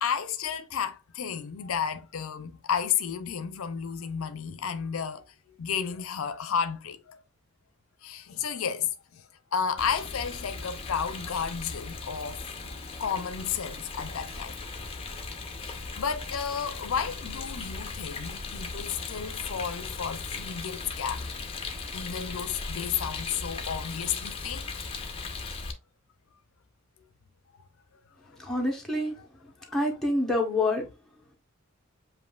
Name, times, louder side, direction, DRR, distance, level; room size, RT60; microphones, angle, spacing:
voice 1, 0.0-7.2 8.0-12.4 13.0-14.5 15.6-21.3 21.9-24.7 27.5-27.6 28.4-28.5 29.2-29.3 29.6-29.8, left 7 dB, 75° left, 0.5 m, -32 dB
Rain, 9.8-25.7, left 4 dB, 25° left, 0.6 m, -38 dB
voice 2, 28.4-29.1 29.7-30.9, left 2 dB, ahead, 1.1 m, -27 dB
7.3 x 2.6 x 2.3 m
head